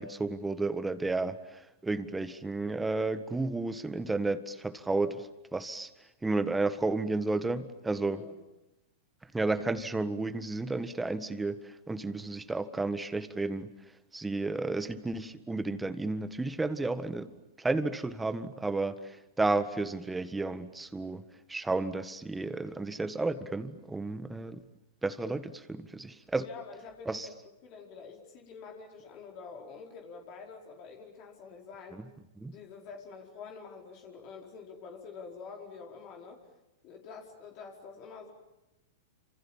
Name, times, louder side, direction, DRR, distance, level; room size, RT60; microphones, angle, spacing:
voice 1, 0.0-5.9 6.2-8.2 9.2-13.7 14.1-17.3 17.6-21.2 21.5-24.6 25.0-26.5 27.0-27.3 31.9-32.1 32.4-32.5, right 3 dB, 10° right, 12 dB, 1.6 m, -32 dB
voice 2, 8.0-8.4 26.4-27.3 27.6-32.0 32.5-36.4 36.8-38.3, left 5 dB, 45° left, 1 dB, 4.8 m, -47 dB
29.0 x 27.0 x 7.5 m, 0.94 s
hypercardioid pair, 110°, 0 cm